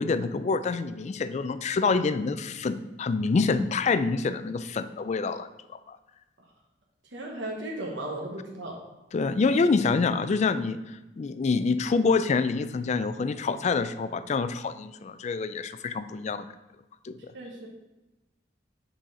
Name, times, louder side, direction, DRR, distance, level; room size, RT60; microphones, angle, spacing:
voice 1, 0.0-5.5 5.9-6.0 9.1-10.8 11.2-16.4 17.0-17.2, left 4 dB, 35° left, 12 dB, 0.3 m, -26 dB
voice 2, 7.1-8.8 17.3-17.7, right 1 dB, 70° right, -1 dB, 1.1 m, -35 dB
6.4 x 4.3 x 4.8 m, 1.0 s
head